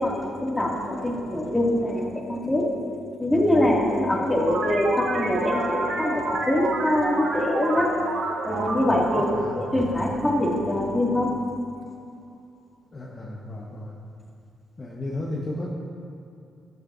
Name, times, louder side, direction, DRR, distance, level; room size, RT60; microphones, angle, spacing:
voice 1, 0.0-2.7 3.2-7.9 8.4-11.3, left 1 dB, 10° left, -3 dB, 2.3 m, -24 dB
sound 1, 4.4-10.6, right 2 dB, 70° right, 1.4 m, -30 dB
voice 2, 9.2-9.7 12.9-13.9 14.8-15.7, left 1 dB, 30° left, -4 dB, 1.2 m, -34 dB
14.5 x 11.0 x 2.7 m, 2.5 s
cardioid pair, 90°, 0 cm